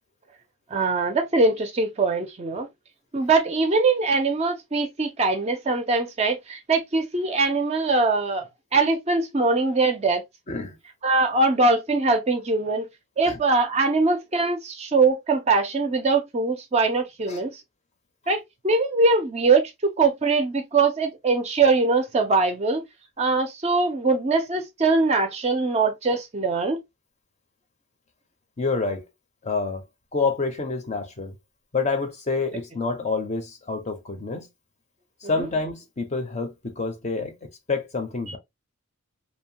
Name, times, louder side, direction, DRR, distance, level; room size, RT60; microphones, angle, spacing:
voice 1, 0.7-2.7 3.1-8.5 8.7-10.2 11.0-12.8 13.2-17.6 18.3-22.8 23.2-26.8 35.4-35.5 38.3-38.4, right 3 dB, 30° right, 0.4 m, -22 dB
voice 2, 28.6-29.0 29.4-29.8 30.1-31.3 31.7-34.5 35.2-37.3 37.7-38.4, left 4 dB, 30° left, 0.6 m, -27 dB
2.7 x 2.2 x 2.7 m
head